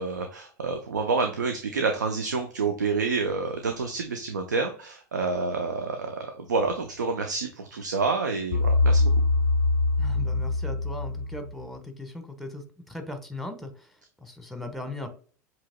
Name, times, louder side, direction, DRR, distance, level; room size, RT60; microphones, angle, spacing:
voice 1, 0.0-9.1, right 4 dB, 80° right, 5 dB, 0.6 m, -28 dB
sound 1, 8.5-11.6, left 3 dB, 70° left, 0.4 m, -23 dB
voice 2, 10.0-13.9 14.2-15.1, left 2 dB, ahead, 6 dB, 1.2 m, -38 dB
7.4 x 3.1 x 2.2 m, 0.43 s
figure-of-eight pair, 85°, 9 cm